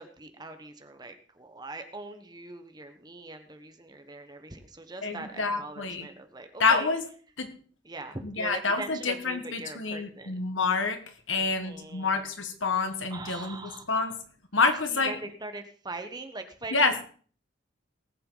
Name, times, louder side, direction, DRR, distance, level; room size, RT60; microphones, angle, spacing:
voice 1, 0.0-6.9 7.8-10.3 11.4-12.3 13.1-14.1 14.9-17.0, right 2 dB, 20° right, 7 dB, 1.2 m, -42 dB
voice 2, 5.0-6.1 6.6-7.0 7.4-7.5 8.2-11.0 11.3-14.1 14.5-15.2 16.7-16.9, left 4 dB, 85° left, 7 dB, 1.7 m, -27 dB
18.5 x 7.8 x 4.0 m, 0.43 s
head